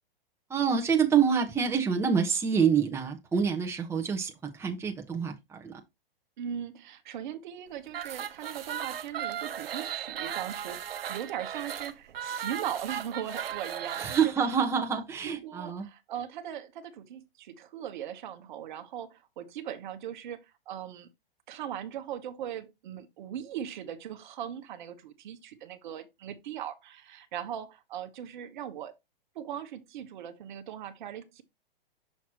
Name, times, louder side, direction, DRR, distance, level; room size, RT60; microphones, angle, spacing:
voice 1, 0.5-5.8 14.0-15.9, right 6 dB, 10° right, 1.0 m, -27 dB
voice 2, 6.4-10.8 11.1-14.3 15.2-21.1 21.5-29.0 29.3-31.4, right 10 dB, 55° right, 1.1 m, -39 dB
sound 1, 7.9-14.3, right 9 dB, 70° right, 0.8 m, -36 dB
6.3 x 5.8 x 2.9 m
hypercardioid pair, 120°, 29 cm